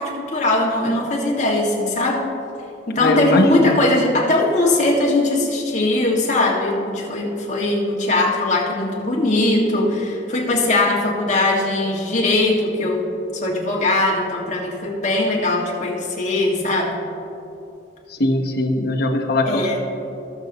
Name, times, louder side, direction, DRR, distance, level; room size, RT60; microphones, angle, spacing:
voice 1, 0.0-2.2 2.9-13.0 13.4-17.0 19.4-19.8, left 2 dB, 40° left, -3 dB, 1.9 m, -20 dB
voice 2, 3.0-3.8 18.2-19.8, left 1 dB, 60° left, 1 dB, 1.0 m, -20 dB
19.0 x 6.8 x 3.0 m, 2.8 s
head